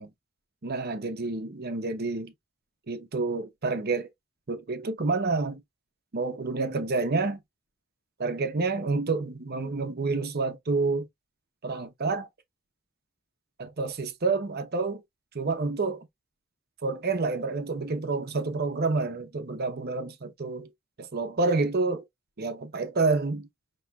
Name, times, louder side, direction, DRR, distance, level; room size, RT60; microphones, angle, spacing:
voice 1, 0.6-2.3 2.9-4.1 4.5-5.6 6.1-7.4 8.2-11.1 11.6-12.3 13.6-15.0 15.3-16.1 16.8-20.7 21.0-22.0 22.4-23.5, right 3 dB, 45° right, 0.8 m, -28 dB
5.8 x 3.0 x 2.3 m
head